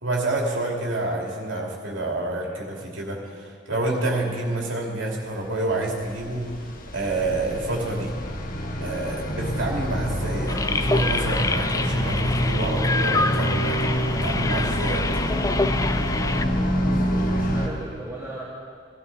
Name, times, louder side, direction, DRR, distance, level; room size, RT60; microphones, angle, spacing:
voice 1, 0.0-6.6 6.9-8.1 8.8-15.3, right 2 dB, 75° right, -2 dB, 2.7 m, -28 dB
sound 1, 5.6-17.7, equal, 45° left, 1.2 m, -26 dB
sound 2, 10.5-16.5, left 3 dB, 15° left, 0.4 m, -27 dB
voice 2, 16.4-18.4, right 1 dB, 10° right, -9 dB, 2.7 m, -38 dB
18.0 x 12.5 x 4.1 m, 2.1 s
head